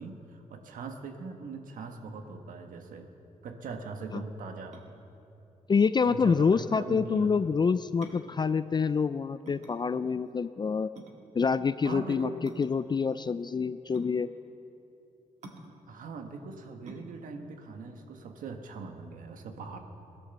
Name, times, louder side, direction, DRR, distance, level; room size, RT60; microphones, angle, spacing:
voice 1, 0.0-3.1 3.4-4.8 6.1-7.3 11.8-12.4 15.9-19.8, right 4 dB, 80° right, 5 dB, 1.4 m, -41 dB
sound 1, 4.7-18.9, right 2 dB, 60° right, 1.7 m, -52 dB
voice 2, 5.7-10.9 11.3-12.3 12.6-14.3, left 5 dB, 30° left, 13 dB, 0.4 m, -27 dB
16.5 x 11.0 x 7.1 m, 2.8 s
cardioid pair, 75°, 14 cm